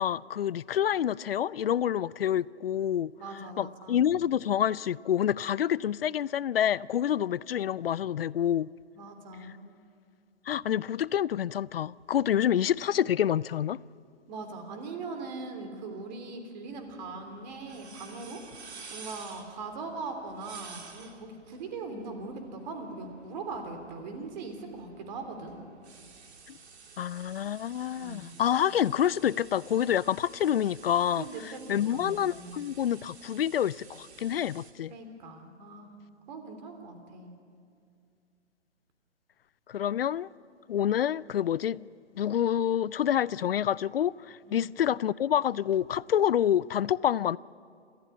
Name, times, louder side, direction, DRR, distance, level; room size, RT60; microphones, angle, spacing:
voice 1, 0.0-3.1 3.6-8.7 10.5-13.8 27.0-34.9 39.7-40.3 40.7-41.8 42.2-47.4, left 10 dB, 55° left, 0.4 m, -27 dB
voice 2, 3.2-4.0 9.0-9.6 14.3-18.4 18.9-25.5 28.0-28.3 31.2-32.6 34.9-35.9 36.3-37.3 44.5-44.6, right 3 dB, 40° right, 3.3 m, -40 dB
sound 1, 16.7-34.7, right 5 dB, 65° right, 2.7 m, -51 dB
27.0 x 14.5 x 8.5 m
hypercardioid pair, 145°, 35 cm